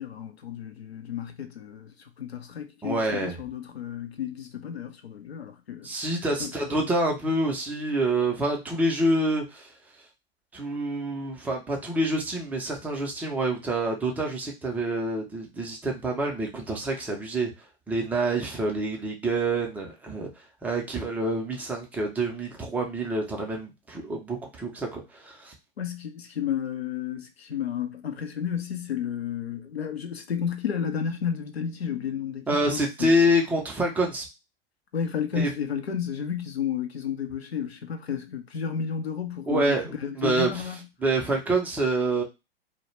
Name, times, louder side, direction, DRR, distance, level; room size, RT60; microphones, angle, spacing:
voice 1, 0.0-5.9 6.4-6.9 25.8-33.2 34.9-40.8, left 8 dB, 80° left, 0.6 m, -32 dB
voice 2, 2.8-3.4 5.8-9.7 10.5-17.5 17.9-20.3 20.6-25.5 32.5-34.3 35.3-35.5 39.5-39.9 40.2-40.5 41.0-42.2, right 1 dB, 5° right, 0.4 m, -27 dB
2.1 x 2.0 x 3.0 m
figure-of-eight pair, 100°, 31 cm